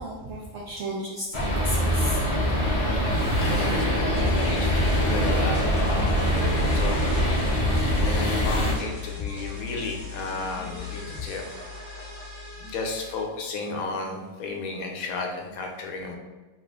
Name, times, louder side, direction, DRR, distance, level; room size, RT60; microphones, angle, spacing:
voice 1, 0.0-2.2, equal, 65° right, -5 dB, 0.7 m, -34 dB
sound 1, 1.3-8.7, equal, 45° left, 0.4 m, -23 dB
voice 2, 3.4-6.3 6.6-7.4 7.7-11.5 12.6-16.2, left 3 dB, 75° left, 2 dB, 1.0 m, -33 dB
sound 2, 4.1-13.2, left 6 dB, 5° left, 1.3 m, -36 dB
3.0 x 2.4 x 3.4 m, 1.3 s
omnidirectional pair, 1.6 m